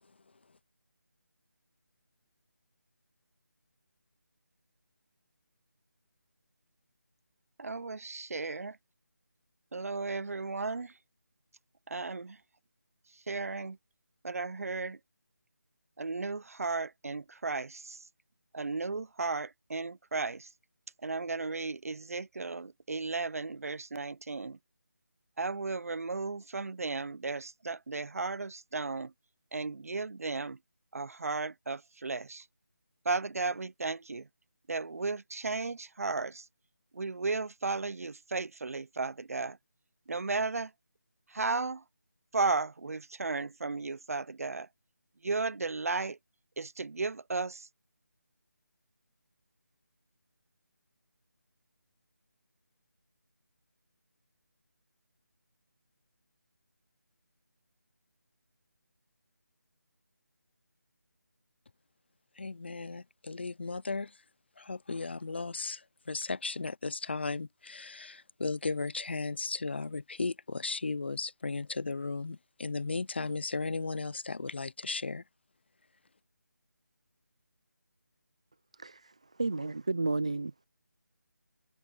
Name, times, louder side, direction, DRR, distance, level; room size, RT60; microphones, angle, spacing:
voice 1, 7.6-8.8 9.7-11.0 11.9-12.4 13.1-13.8 14.2-15.0 16.0-18.1 18.5-20.5 21.0-24.6 25.4-29.1 29.5-30.6 30.9-32.5 33.0-34.3 34.7-36.5 36.9-39.6 40.1-40.7 41.3-41.8 42.3-44.7 45.2-46.2 46.6-47.7, right 3 dB, 55° right, 0.8 m, -35 dB
voice 2, 62.4-64.1 64.6-65.8 66.1-75.2, left 3 dB, 35° left, 0.5 m, -35 dB
voice 3, 78.7-80.7, right 3 dB, 20° right, 0.4 m, -33 dB
figure-of-eight pair, 175°, 10 cm